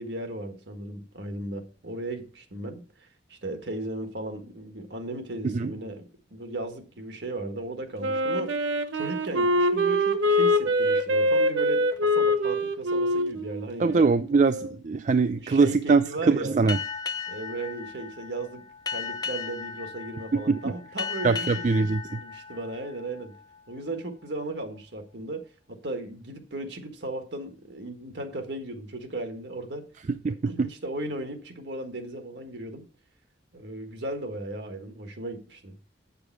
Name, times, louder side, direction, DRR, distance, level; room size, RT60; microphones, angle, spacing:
voice 1, 0.0-8.6 8.9-13.9 15.3-16.6 17.3-18.7 18.9-21.7 22.1-23.3 23.7-25.4 25.7-29.8 30.3-32.8 33.5-35.8, right 1 dB, 65° right, 1.6 m, -36 dB
Wind instrument woodwind instrument, 8.0-14.8, equal, 90° right, 1.0 m, -24 dB
voice 2, 13.8-16.8 20.3-20.6 21.2-22.2 30.2-30.7, right 4 dB, 40° right, 0.3 m, -23 dB
Boat Water vehicle, 16.7-23.7, left 5 dB, 20° left, 0.5 m, -36 dB
8.1 x 6.8 x 4.7 m
head